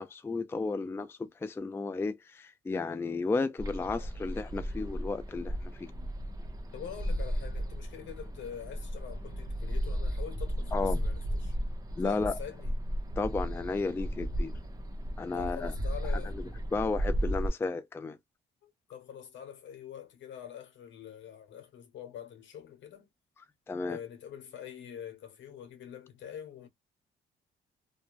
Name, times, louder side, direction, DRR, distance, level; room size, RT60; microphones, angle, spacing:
voice 1, 0.0-6.1 10.7-11.0 12.0-12.4 13.2-14.5 15.2-15.7 16.7-18.2 23.7-24.0, left 3 dB, 10° left, 0.3 m, -33 dB
sound 1, 3.6-17.5, equal, 20° right, 0.8 m, -34 dB
voice 2, 6.7-11.6 12.0-12.7 15.3-16.4 18.6-23.1 23.9-26.7, left 9 dB, 70° left, 1.0 m, -45 dB
2.4 x 2.1 x 3.0 m
cardioid pair, 90°, 20 cm